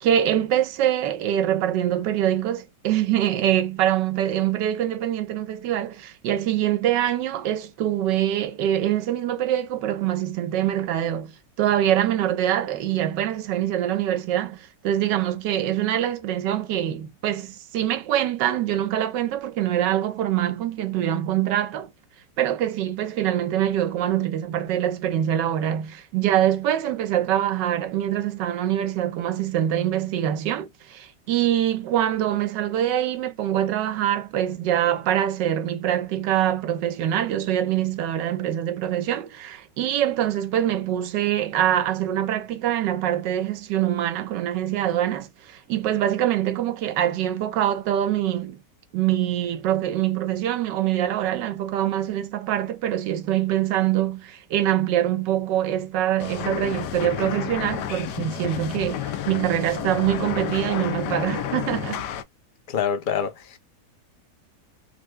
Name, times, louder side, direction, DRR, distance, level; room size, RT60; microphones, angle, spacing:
voice 1, 0.0-21.9 22.4-48.6 48.9-62.0, right 11 dB, 90° right, 1.4 m, -24 dB
sound 1, 56.2-62.2, left 10 dB, 80° left, 1.1 m, -30 dB
voice 2, 62.7-63.6, left 7 dB, 45° left, 0.6 m, -26 dB
3.5 x 2.1 x 3.1 m
omnidirectional pair, 1.8 m